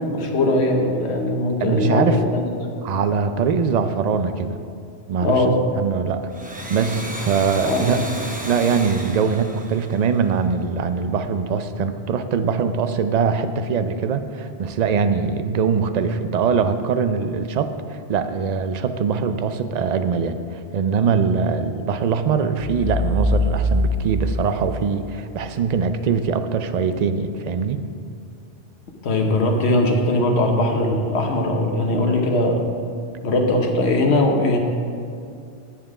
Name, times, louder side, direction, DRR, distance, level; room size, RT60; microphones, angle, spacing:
voice 1, 0.1-2.8 5.2-5.6 7.6-8.1 29.0-32.7 33.2-34.6, left 1 dB, 75° left, 2 dB, 1.3 m, -20 dB
voice 2, 1.6-2.2 2.8-4.6 5.1-5.4 5.7-6.2 6.5-8.0 8.5-27.8, right 6 dB, 50° right, 9 dB, 0.5 m, -22 dB
Domestic sounds home sounds, 6.2-10.7, right 1 dB, 10° right, 0.6 m, -34 dB
sound 1, 22.6-25.5, left 1 dB, 45° left, 0.9 m, -23 dB
10.0 x 7.5 x 4.9 m, 2.4 s
omnidirectional pair, 1.1 m